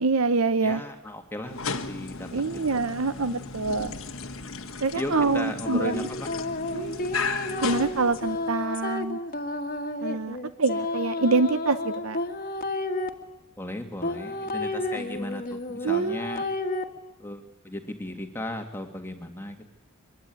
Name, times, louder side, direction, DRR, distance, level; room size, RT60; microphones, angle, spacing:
voice 1, 0.0-0.8 2.3-3.9 4.8-6.1 6.7-7.1 7.6-9.2 10.0-12.2 15.8-16.2, right 3 dB, 75° right, 12 dB, 0.8 m, -26 dB
voice 2, 0.6-2.3 5.0-6.3 13.6-16.4 17.2-19.6, left 1 dB, 10° left, 4 dB, 2.0 m, -36 dB
sound 1, 1.4-8.6, left 4 dB, 70° left, 1.6 m, -35 dB
sound 2, 4.9-13.1 14.0-16.8, left 2 dB, 40° left, 1.9 m, -31 dB
23.5 x 22.5 x 9.3 m, 0.96 s
head